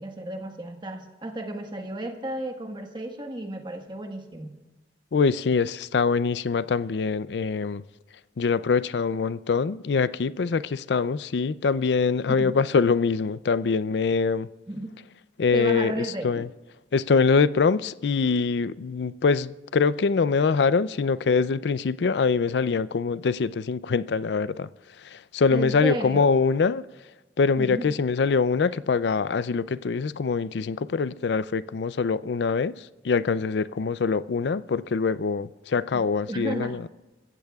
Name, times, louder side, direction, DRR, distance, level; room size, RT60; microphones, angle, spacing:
voice 1, 0.0-4.5 12.3-12.5 14.7-14.9 15.5-16.5 25.5-26.3 27.6-27.9 35.9-36.8, right 1 dB, 25° right, 1.4 m, -33 dB
voice 2, 5.1-7.8 8.4-14.5 15.4-16.5 16.9-24.7 25.0-26.8 27.4-36.8, left 5 dB, 75° left, 0.4 m, -24 dB
25.0 x 15.0 x 2.4 m
head